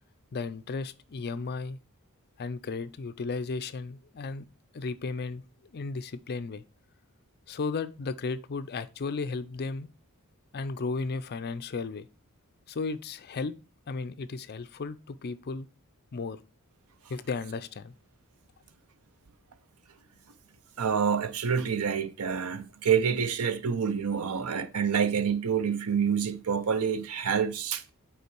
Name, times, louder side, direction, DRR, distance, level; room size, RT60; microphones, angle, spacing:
voice 1, 0.3-1.8 2.4-4.5 4.7-5.4 5.7-6.6 7.5-9.9 10.5-12.1 12.7-13.5 13.9-15.7 16.1-16.4 17.1-17.9, left 4 dB, 45° left, 0.5 m, -34 dB
voice 2, 20.8-27.8, right 7 dB, 70° right, 0.6 m, -27 dB
5.6 x 4.4 x 4.5 m
head